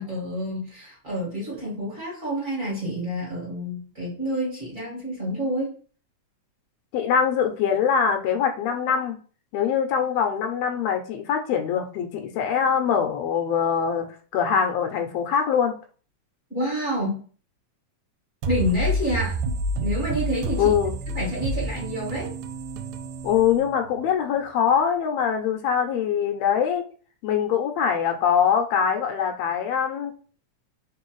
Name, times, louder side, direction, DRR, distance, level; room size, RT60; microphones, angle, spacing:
voice 1, 0.0-5.7 16.5-17.2 18.4-20.7 21.1-22.3, equal, 35° right, -5 dB, 1.4 m, -28 dB
voice 2, 6.9-9.2 9.5-15.8 20.6-21.0 23.2-26.8 27.2-30.1, left 7 dB, 80° left, 4 dB, 1.6 m, -23 dB
sound 1, 18.4-24.1, right 2 dB, 80° right, 1.8 m, -29 dB
4.1 x 3.0 x 3.0 m, 0.40 s
omnidirectional pair, 3.3 m